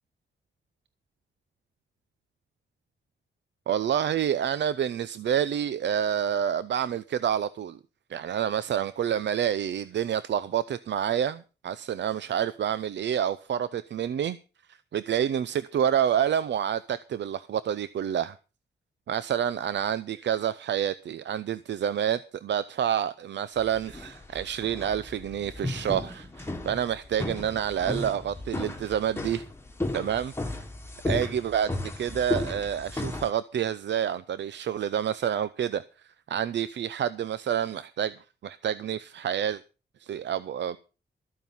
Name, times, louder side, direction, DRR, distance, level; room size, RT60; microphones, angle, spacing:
voice 1, 3.7-7.8 8.1-14.4 14.9-18.3 19.1-29.4 29.9-30.6 31.0-35.8 36.3-38.1 38.4-39.6 40.0-40.8, right 9 dB, 80° right, 0.6 m, -28 dB
sound 1, 23.6-33.3, left 2 dB, 15° left, 1.6 m, -34 dB
13.5 x 9.3 x 5.6 m
wide cardioid pair, 155°, 18 cm